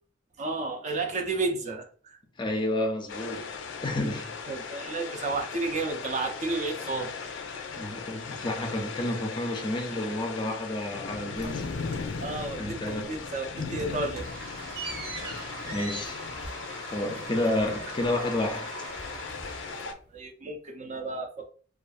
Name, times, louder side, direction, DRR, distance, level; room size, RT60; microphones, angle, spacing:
voice 1, 0.4-2.2 4.5-7.1 12.2-14.3 20.1-21.5, right 3 dB, 40° right, 0.4 m, -32 dB
voice 2, 2.4-3.4 3.8-4.3 7.7-11.8 12.6-13.2 15.6-16.2 16.9-18.7, left 1 dB, 25° left, 0.4 m, -30 dB
sound 1, 3.1-19.9, left 5 dB, 90° left, 0.4 m, -38 dB
sound 2, 11.4-12.6 12.9-13.3 13.6-18.6 18.9-20.2, right 2 dB, 55° right, 0.9 m, -43 dB
Toilet flush, 14.2-19.9, right 3 dB, 85° right, 1.1 m, -43 dB
2.5 x 2.3 x 2.4 m
head